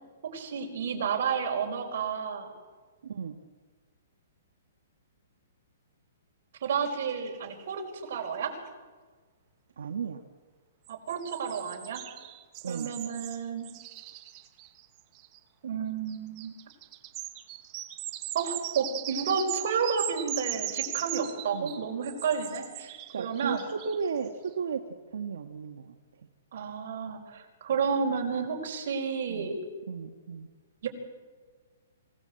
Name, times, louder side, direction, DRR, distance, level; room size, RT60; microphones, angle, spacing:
voice 1, 0.3-2.5 6.6-7.8 8.1-8.5 10.9-12.0 12.7-13.7 15.6-16.5 18.3-23.7 26.5-29.6 30.8-30.9, right 6 dB, 45° right, 2 dB, 4.9 m, -31 dB
voice 2, 3.0-3.3 9.8-10.2 12.6-12.9 21.5-21.8 23.1-24.8 25.1-26.0 29.3-29.5 29.9-30.5, right 6 dB, 70° right, 4 dB, 1.8 m, -34 dB
sound 1, 6.8-7.9 8.2-8.3 8.5-8.6 10.9-15.4 16.1-24.3, right 16 dB, 20° right, 1.1 m, -39 dB
27.0 x 18.5 x 7.9 m, 1.5 s
hypercardioid pair, 180°, 0 cm